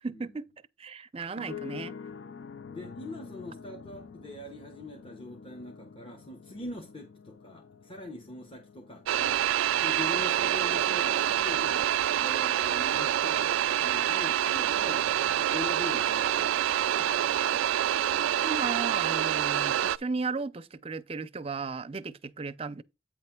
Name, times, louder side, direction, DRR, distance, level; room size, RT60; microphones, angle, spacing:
voice 1, 0.0-0.5 0.8-1.9 18.4-22.8, right 4 dB, 30° right, 0.5 m, -35 dB
sound 1, 1.4-11.4, left 6 dB, 65° left, 0.5 m, -47 dB
voice 2, 2.7-9.4 9.8-15.1 15.4-17.1, left 1 dB, 30° left, 1.0 m, -42 dB
sound 2, 9.1-20.0, right 11 dB, 85° right, 0.3 m, -26 dB
8.9 x 3.2 x 5.8 m
head